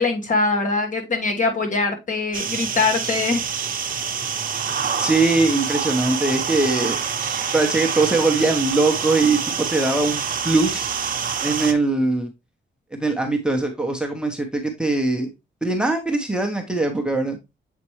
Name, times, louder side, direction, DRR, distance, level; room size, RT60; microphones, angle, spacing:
voice 1, 0.0-3.4, left 3 dB, 40° left, 1.4 m, -22 dB
sound 1, 2.3-11.7, right 7 dB, 50° right, 0.9 m, -26 dB
voice 2, 5.0-7.0 7.5-10.9 11.4-12.3 12.9-15.3 15.6-17.4, right 3 dB, 5° right, 0.8 m, -21 dB
7.4 x 4.4 x 3.1 m
wide cardioid pair, 155°, 19 cm